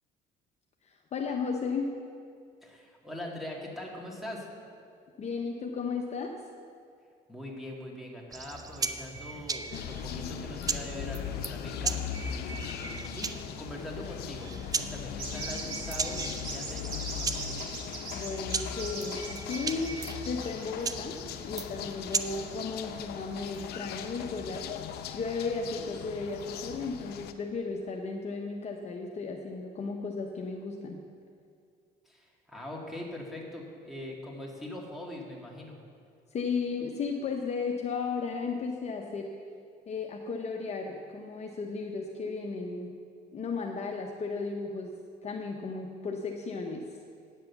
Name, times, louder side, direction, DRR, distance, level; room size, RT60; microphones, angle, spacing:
voice 1, 1.1-1.9 5.2-6.3 18.1-20.0 20.2-21.1 21.4-24.7 25.1-31.0 36.3-39.3 39.9-42.9 43.3-44.9 45.2-46.8, left 4 dB, 40° left, 1 dB, 0.8 m, -34 dB
voice 2, 2.6-4.5 7.3-17.6 32.0-35.8, left 1 dB, ahead, -2 dB, 2.1 m, -42 dB
sound 1, 8.3-22.2, right 4 dB, 20° right, 0.5 m, -38 dB
sound 2, 9.7-27.3, left 9 dB, 70° left, 0.6 m, -39 dB
sound 3, 15.2-21.2, right 3 dB, 60° right, 2.3 m, -40 dB
9.0 x 7.6 x 7.0 m, 2.3 s
cardioid pair, 110°, 17 cm